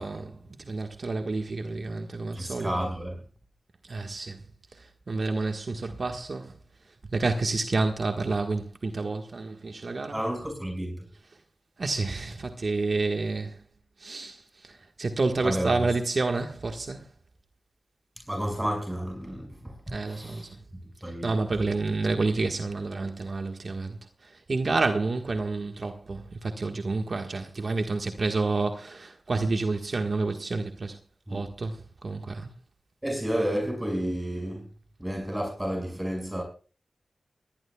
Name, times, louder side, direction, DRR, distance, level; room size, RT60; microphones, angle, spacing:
voice 1, 0.0-2.7 3.9-4.4 4.7-6.5 7.1-10.2 11.8-13.6 14.0-17.1 19.9-20.5 21.2-31.0 31.3-32.5, right 3 dB, 60° right, 1.5 m, -29 dB
voice 2, 2.3-3.2 10.1-11.0 15.4-15.9 18.2-21.5 31.3-31.4 33.0-34.7 35.0-36.4, equal, 15° right, 5.8 m, -31 dB
21.5 x 18.5 x 2.3 m
cardioid pair, 55°, 0 cm